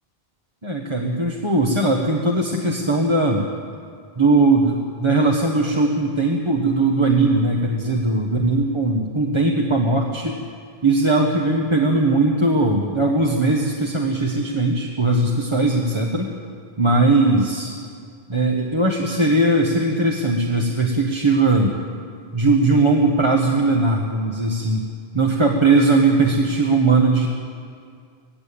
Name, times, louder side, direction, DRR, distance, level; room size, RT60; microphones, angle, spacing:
voice 1, 0.6-3.5 4.2-10.4 10.8-16.3 16.8-17.7 18.3-21.7 22.3-24.8 25.1-27.3, right 2 dB, 30° right, 0 dB, 1.4 m, -19 dB
19.0 x 16.0 x 8.7 m, 2.2 s
omnidirectional pair, 1.0 m